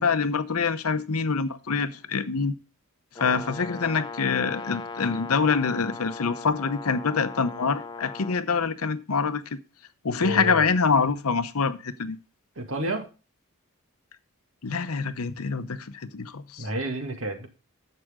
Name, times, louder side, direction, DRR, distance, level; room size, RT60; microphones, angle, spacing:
voice 1, 0.0-2.5 3.2-9.6 10.0-12.2 14.6-16.7, left 5 dB, 90° left, 0.8 m, -25 dB
Brass instrument, 3.1-8.4, left 4 dB, 20° left, 0.7 m, -38 dB
voice 2, 10.2-10.7 12.6-13.0 16.6-17.5, right 1 dB, 70° right, 2.1 m, -30 dB
11.0 x 7.7 x 3.7 m
head